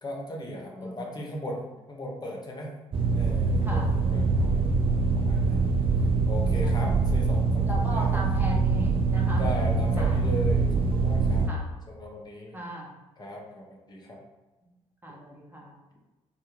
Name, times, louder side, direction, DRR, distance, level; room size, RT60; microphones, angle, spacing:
voice 1, 0.0-2.7 3.1-4.7 5.2-5.6 6.2-8.2 9.4-11.5 11.9-12.6 13.2-14.2, left 1 dB, 25° left, -1 dB, 0.7 m, -37 dB
sound 1, 2.9-11.5, right 4 dB, 35° right, 0.4 m, -24 dB
voice 2, 6.5-6.9 7.7-9.4 10.0-10.2 11.5-11.7 12.5-12.9 15.0-15.7, right 1 dB, 10° right, -3 dB, 0.8 m, -37 dB
2.4 x 2.2 x 3.1 m, 1.1 s
figure-of-eight pair, 45°, 16 cm